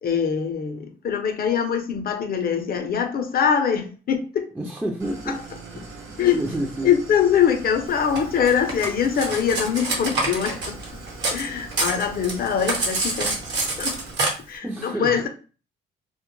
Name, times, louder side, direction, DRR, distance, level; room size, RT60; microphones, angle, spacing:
voice 1, 0.0-4.5 5.3-5.4 6.2-6.4 6.8-10.8 11.3-13.4 13.8-14.0 14.5-15.3, left 7 dB, 50° left, 0.6 m, -23 dB
voice 2, 4.5-5.4 5.7-6.1 6.3-6.9 14.6-15.3, right 1 dB, 10° right, 0.5 m, -29 dB
Idling, 5.0-14.1, right 3 dB, 85° right, 0.7 m, -41 dB
Cutlery silverware, 8.1-11.4 11.7-14.3, right 2 dB, 60° right, 0.9 m, -26 dB
2.2 x 2.1 x 3.0 m
cardioid pair, 90°, 20 cm